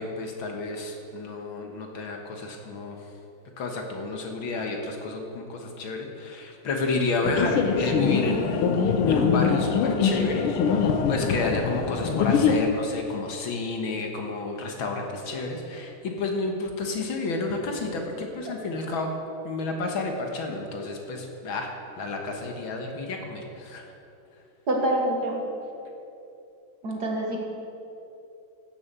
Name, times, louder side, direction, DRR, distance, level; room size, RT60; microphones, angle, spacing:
voice 1, 0.0-3.0 3.6-8.7 9.1-19.1 19.4-21.7 22.0-23.8, left 3 dB, 70° left, 2 dB, 2.1 m, -30 dB
sound 1, 7.2-12.6, left 6 dB, 85° left, 1.7 m, -23 dB
voice 2, 24.7-25.4 26.8-27.4, right 1 dB, 50° right, -1 dB, 2.1 m, -26 dB
15.5 x 7.4 x 6.8 m, 2.9 s
omnidirectional pair, 2.3 m